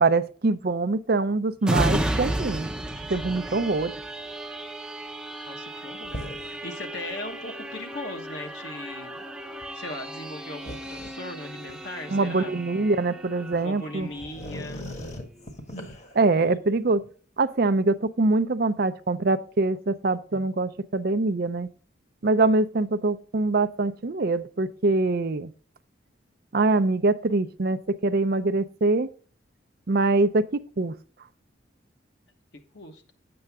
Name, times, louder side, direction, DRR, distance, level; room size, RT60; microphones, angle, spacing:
voice 1, 0.0-2.7 3.1-3.9 12.1-14.1 16.1-17.0 17.4-21.7 22.2-25.5 26.5-29.1 29.9-30.9, right 3 dB, 50° right, 0.5 m, -24 dB
sound 1, 1.6-15.0 15.4-15.5, right 1 dB, 5° right, 0.6 m, -33 dB
voice 2, 5.4-9.2 9.7-12.5 13.6-14.8 32.7-33.0, left 1 dB, 60° left, 1.2 m, -38 dB
sound 2, 6.0-6.6 7.1-7.2 9.6-9.7 10.6-12.5 13.5-13.6 14.0-16.3, equal, 35° left, 1.3 m, -40 dB
10.0 x 7.8 x 3.5 m
head